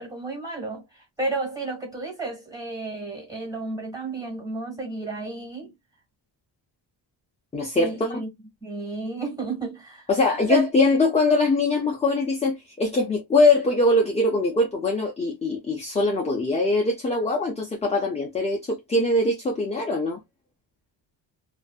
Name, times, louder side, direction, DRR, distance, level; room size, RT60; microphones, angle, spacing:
voice 1, 0.0-5.7 7.7-8.3 8.6-10.6, right 3 dB, 10° right, 1.4 m, -32 dB
voice 2, 7.5-8.2 10.1-20.2, left 2 dB, 15° left, 0.4 m, -22 dB
2.6 x 2.3 x 2.2 m
cardioid pair, 130°, 46 cm